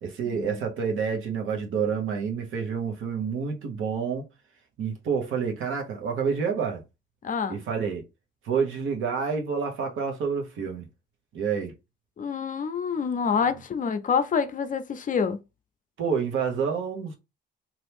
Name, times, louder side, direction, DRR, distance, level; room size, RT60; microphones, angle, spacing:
voice 1, 0.0-4.3 4.8-6.8 7.5-8.0 8.4-10.9 11.3-11.7 16.0-17.2, right 6 dB, 80° right, 1.0 m, -28 dB
voice 2, 7.2-7.6 12.2-15.4, left 6 dB, 40° left, 0.5 m, -27 dB
3.0 x 2.5 x 3.4 m
cardioid pair, 90°, 20 cm